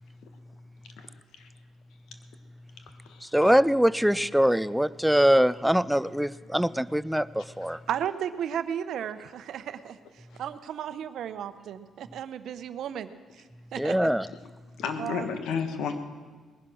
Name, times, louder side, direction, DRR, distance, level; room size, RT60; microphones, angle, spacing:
voice 1, 3.2-7.8 13.8-14.3, equal, 5° right, 18 dB, 0.4 m, -23 dB
voice 2, 7.9-13.4 13.7-14.1 15.0-15.4, right 9 dB, 75° right, 12 dB, 0.8 m, -34 dB
voice 3, 14.8-16.0, left 6 dB, 80° left, 8 dB, 1.4 m, -32 dB
19.5 x 10.5 x 6.3 m, 1.4 s
cardioid pair, 90°, 0 cm